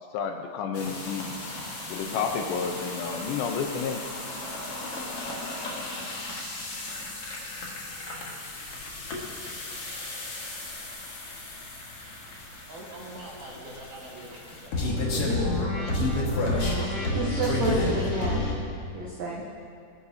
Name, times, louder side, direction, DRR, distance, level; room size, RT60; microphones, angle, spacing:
voice 1, 0.1-1.3 1.9-4.0, left 6 dB, 85° left, 4 dB, 3.1 m, -30 dB
sound 1, 0.7-18.5, left 2 dB, 50° left, 1.9 m, -32 dB
voice 2, 12.2-16.0, right 1 dB, 55° right, -4 dB, 2.8 m, -44 dB
voice 3, 16.8-18.5 18.9-19.4, right 3 dB, 80° right, -3 dB, 1.5 m, -31 dB
20.0 x 12.0 x 2.8 m, 2.2 s
omnidirectional pair, 4.8 m